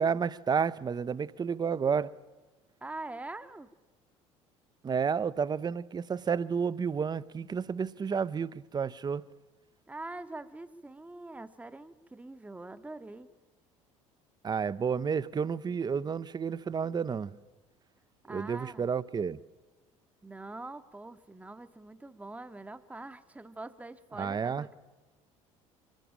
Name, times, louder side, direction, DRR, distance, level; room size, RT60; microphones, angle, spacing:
voice 1, 0.0-2.2 4.8-9.3 14.4-17.4 18.3-19.4 24.2-24.7, right 6 dB, 25° right, 0.6 m, -31 dB
voice 2, 2.8-3.7 9.9-13.3 18.2-19.0 20.2-24.7, right 2 dB, 10° right, 0.9 m, -44 dB
24.0 x 12.5 x 8.9 m
figure-of-eight pair, 60°, 17 cm